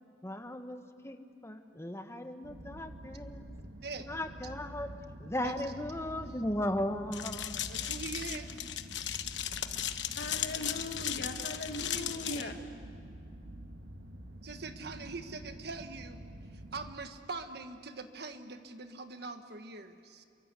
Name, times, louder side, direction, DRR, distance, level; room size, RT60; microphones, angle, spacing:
voice 1, 0.2-3.5 4.0-4.9 5.2-7.7, left 1 dB, 15° left, 1.4 m, -37 dB
sound 1, 2.4-17.0, right 1 dB, 85° right, 1.7 m, -47 dB
sound 2, 7.1-12.4, left 11 dB, 85° left, 1.1 m, -36 dB
voice 2, 7.7-8.6 11.9-12.5 14.4-16.2 16.5-20.2, right 3 dB, 65° right, 1.4 m, -43 dB
voice 3, 10.1-12.5, left 1 dB, 65° left, 1.6 m, -39 dB
28.0 x 23.5 x 8.4 m
head